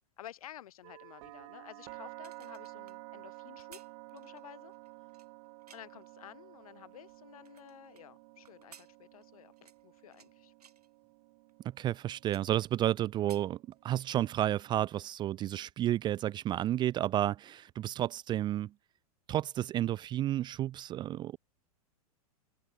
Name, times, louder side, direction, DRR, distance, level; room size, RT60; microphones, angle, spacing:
voice 1, 0.2-3.8 4.1-4.7 5.7-10.5, left 12 dB, 70° left, 2.2 m, -52 dB
sound 1, 0.8-14.7, right 27 dB, 50° right, 3.7 m, -52 dB
sound 2, 2.1-6.1 6.6-8.0 8.4-10.3 10.6-10.9 11.5-11.6 11.9-12.9 13.2-14.2 14.5-14.7, right 7 dB, 80° right, 6.2 m, -59 dB
voice 2, 11.6-13.6 13.8-18.7 19.3-21.4, right 12 dB, 25° right, 0.4 m, -31 dB
hypercardioid pair, 105°, 19 cm